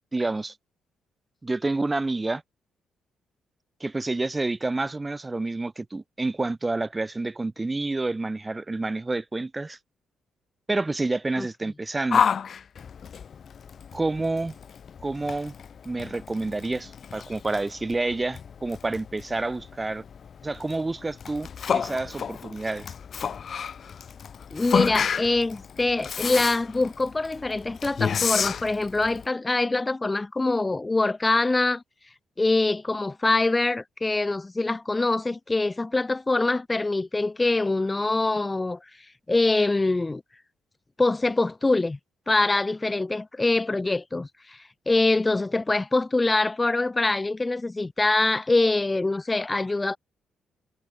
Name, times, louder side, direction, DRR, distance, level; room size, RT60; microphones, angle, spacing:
voice 1, 0.1-0.5 1.4-2.4 3.8-9.8 10.7-12.2 13.9-14.6 15.0-15.5 15.8-20.0 20.4-22.9, right 2 dB, 20° right, 1.4 m, -29 dB
Yell, 12.1-29.3, left 7 dB, 50° left, 1.0 m, -31 dB
voice 2, 24.5-31.8 32.4-38.8 39.3-40.2 41.0-42.0 42.3-50.0, left 2 dB, 20° left, 0.9 m, -24 dB
cardioid pair, 90°, 0 cm